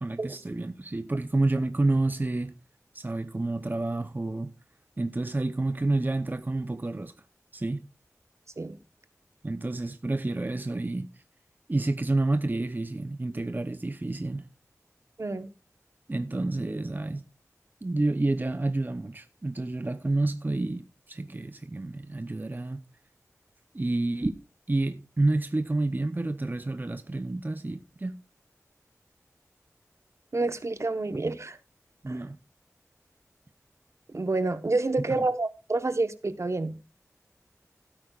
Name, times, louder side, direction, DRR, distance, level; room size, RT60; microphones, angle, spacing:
voice 1, 0.0-2.5 2.9-4.5 5.0-7.1 7.5-7.9 9.4-11.2 11.7-14.5 16.1-17.2 17.8-22.8 23.7-24.4 24.7-28.2 32.0-32.4 35.0-35.3, right 2 dB, 35° right, 0.7 m, -29 dB
voice 2, 30.3-31.6 32.1-32.2 34.1-36.8, right 2 dB, 55° right, 1.1 m, -28 dB
16.5 x 8.7 x 2.4 m
wide cardioid pair, 65°, 6 cm